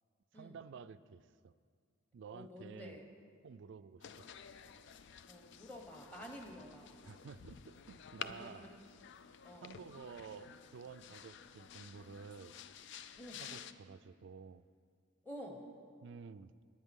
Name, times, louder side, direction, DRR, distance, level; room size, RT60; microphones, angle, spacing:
voice 1, 0.3-1.5 2.1-3.0 3.4-4.3 7.0-8.7 9.6-12.5 13.4-14.7 16.0-16.5, right 6 dB, 60° right, 14 dB, 0.4 m, -52 dB
voice 2, 2.3-3.0 5.3-6.9 8.2-8.7 9.4-9.7 13.2-13.4 15.2-15.7, equal, 10° left, 2 dB, 1.2 m, -50 dB
sound 1, 4.0-13.7, left 8 dB, 60° left, 0.4 m, -52 dB
18.5 x 9.3 x 3.7 m, 2.1 s
head